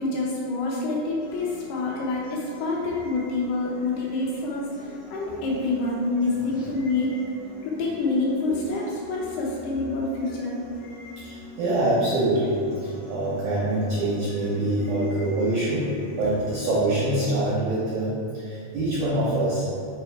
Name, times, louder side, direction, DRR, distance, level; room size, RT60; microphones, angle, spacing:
voice 1, 0.0-7.1 7.6-10.6, left 3 dB, 75° left, -4 dB, 2.6 m, -27 dB
sound 1, 1.2-17.2, left 2 dB, 55° left, 1.9 m, -43 dB
voice 2, 11.2-15.9 16.2-19.6, right 1 dB, 85° right, -6 dB, 1.7 m, -25 dB
6.5 x 4.2 x 4.6 m, 2.5 s
omnidirectional pair, 5.1 m